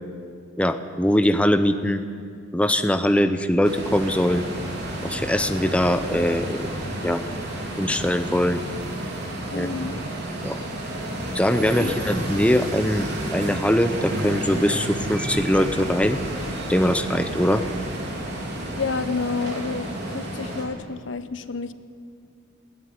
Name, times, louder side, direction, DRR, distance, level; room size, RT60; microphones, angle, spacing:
voice 1, 0.6-2.0 2.5-4.4 5.0-6.7 7.0-7.2 7.8-8.6 9.5-9.7 10.4-10.6 11.3-16.2 16.7-17.6, equal, 5° left, 8 dB, 0.7 m, -22 dB
sound 1, 3.6-20.7, right 1 dB, 60° right, 3.8 m, -31 dB
voice 2, 9.5-10.0 11.8-11.9 18.8-21.7, left 4 dB, 75° left, 12 dB, 0.9 m, -29 dB
20.5 x 15.0 x 9.7 m, 2.3 s
head